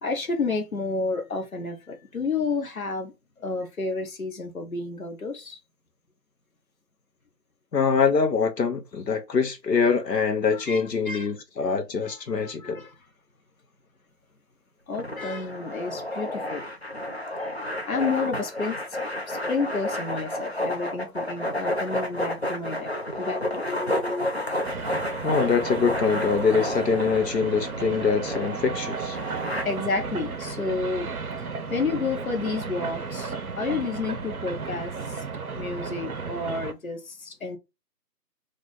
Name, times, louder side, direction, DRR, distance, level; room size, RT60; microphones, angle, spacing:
voice 1, 0.0-5.6 10.5-11.3 11.6-11.8 12.0-12.9 14.9-16.7 17.8-19.0 19.3-24.6 29.6-31.1 31.4-35.2 35.6-37.6, left 4 dB, 60° left, 1.0 m, -31 dB
voice 2, 7.7-12.8 25.2-29.2, left 5 dB, 85° left, 0.9 m, -24 dB
sound 1, 14.9-29.6, left 1 dB, 40° left, 0.6 m, -31 dB
sound 2, 24.6-36.7, right 5 dB, 65° right, 0.6 m, -34 dB
3.2 x 2.5 x 3.8 m
figure-of-eight pair, 175°, 48 cm